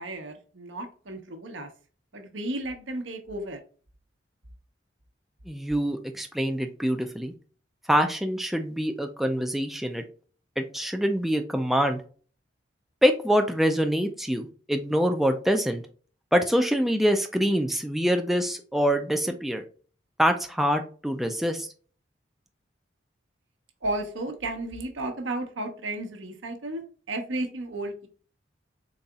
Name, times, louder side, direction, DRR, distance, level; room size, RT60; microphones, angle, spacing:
voice 1, 0.0-1.7 2.1-3.6 23.8-26.8 27.1-28.1, right 2 dB, 90° right, 5 dB, 0.9 m, -33 dB
voice 2, 5.5-7.3 7.9-10.0 10.6-12.0 13.0-15.8 16.3-19.6 20.2-21.7, equal, ahead, 5 dB, 0.3 m, -25 dB
4.0 x 3.8 x 2.3 m, 0.40 s
head